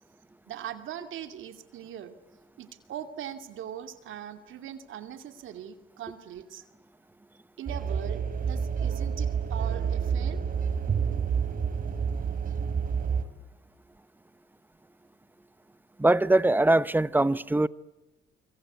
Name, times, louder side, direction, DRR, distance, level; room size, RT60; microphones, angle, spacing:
voice 1, 0.5-2.1 2.6-6.6 7.6-10.4, right 10 dB, 80° right, 2.5 m, -41 dB
sound 1, 7.7-13.2, right 6 dB, 45° right, 3.0 m, -28 dB
voice 2, 16.0-17.7, right 2 dB, 10° right, 0.8 m, -22 dB
26.5 x 24.0 x 8.3 m
cardioid pair, 90°, 20 cm